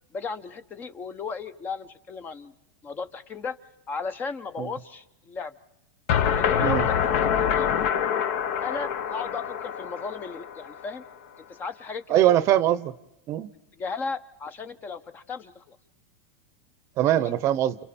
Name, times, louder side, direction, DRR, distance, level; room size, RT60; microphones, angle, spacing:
voice 1, 0.1-2.5 2.8-3.6 3.9-5.5 6.3-7.8 8.6-11.0 11.5-12.3 13.7-15.8 17.0-17.3, left 5 dB, 25° left, 14 dB, 0.8 m, -35 dB
sound 1, 6.1-11.0, left 8 dB, 55° left, 1.2 m, -25 dB
voice 2, 12.1-12.9 13.3-13.5 17.0-17.8, right 12 dB, 35° right, 17 dB, 0.8 m, -22 dB
29.5 x 29.0 x 4.3 m, 0.90 s
supercardioid pair, 140°, 8 cm